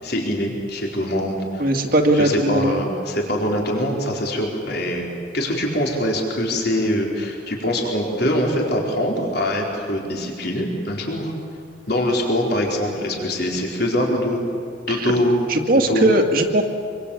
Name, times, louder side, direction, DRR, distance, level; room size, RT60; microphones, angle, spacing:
voice 1, 0.0-1.7 2.1-5.1 5.3-11.3 11.9-14.5 14.9-15.4 15.9-16.1, equal, 50° left, 0 dB, 4.4 m, -23 dB
voice 2, 1.6-2.8 14.9-15.1 15.5-16.6, right 1 dB, 45° right, 3 dB, 2.3 m, -19 dB
26.5 x 24.5 x 8.6 m, 2.3 s
head